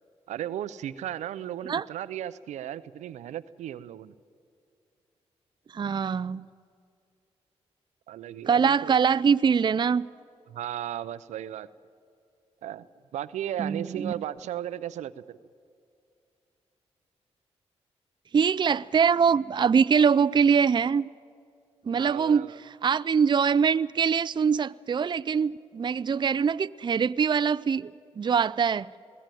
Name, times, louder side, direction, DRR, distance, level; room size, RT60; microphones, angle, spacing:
voice 1, 0.3-4.2 8.1-8.9 10.5-11.7 12.6-12.9 13.1-15.4 21.9-22.6, right 11 dB, 85° right, 0.6 m, -35 dB
voice 2, 5.7-6.4 8.5-10.1 13.6-14.2 18.3-21.1 21.9-22.5 22.8-27.9 28.2-28.9, right 6 dB, 40° right, 0.5 m, -23 dB
21.5 x 16.5 x 9.2 m
cardioid pair, 60°, 12 cm